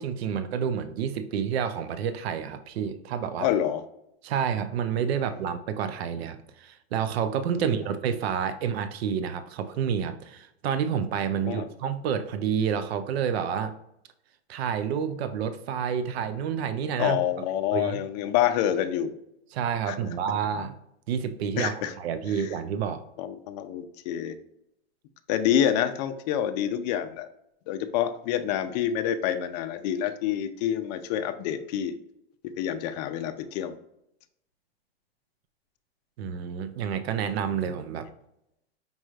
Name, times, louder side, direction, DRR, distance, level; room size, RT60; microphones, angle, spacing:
voice 1, 0.0-3.5 4.2-13.7 14.5-17.2 17.7-18.0 19.5-20.8 21.1-23.0 36.2-38.1, right 7 dB, 75° right, 10 dB, 0.6 m, -29 dB
voice 2, 3.4-3.8 7.5-7.6 11.3-11.7 17.0-19.1 19.9-20.0 21.6-21.9 22.3-22.6 23.2-24.4 25.3-27.3 27.7-31.9 32.4-33.7, left 10 dB, 40° left, 9 dB, 0.5 m, -27 dB
5.3 x 3.1 x 2.3 m, 0.80 s
supercardioid pair, 140°, 32 cm